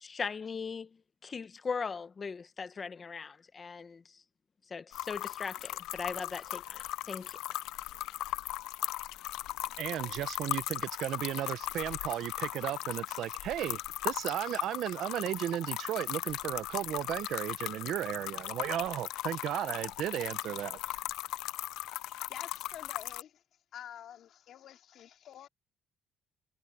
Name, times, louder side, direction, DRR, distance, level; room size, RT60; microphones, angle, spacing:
voice 1, 0.0-0.9 1.2-4.0 4.7-7.4, left 5 dB, 30° left, 1.2 m, -39 dB
sound 1, 4.9-23.2, left 15 dB, 85° left, 0.5 m, -38 dB
voice 2, 9.8-20.8, right 12 dB, 65° right, 1.1 m, -35 dB
voice 3, 22.3-23.4 23.7-25.5, left 10 dB, 60° left, 2.9 m, -48 dB
cardioid pair, 125°, 0 cm